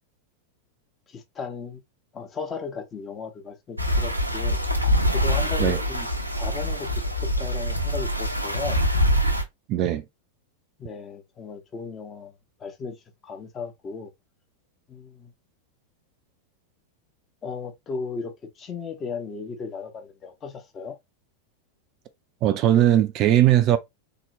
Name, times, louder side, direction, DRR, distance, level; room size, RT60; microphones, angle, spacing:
voice 1, 1.1-1.8 2.1-4.6 5.1-6.1 6.3-8.8 10.8-12.3 12.6-14.1 14.9-15.3 17.4-21.0, left 5 dB, 25° left, 1.0 m, -36 dB
sound 1, 3.8-9.4, equal, 90° right, 0.7 m, -24 dB
voice 2, 9.7-10.0 22.4-23.8, right 12 dB, 35° right, 0.5 m, -19 dB
3.8 x 2.9 x 2.9 m
figure-of-eight pair, 90°, 0 cm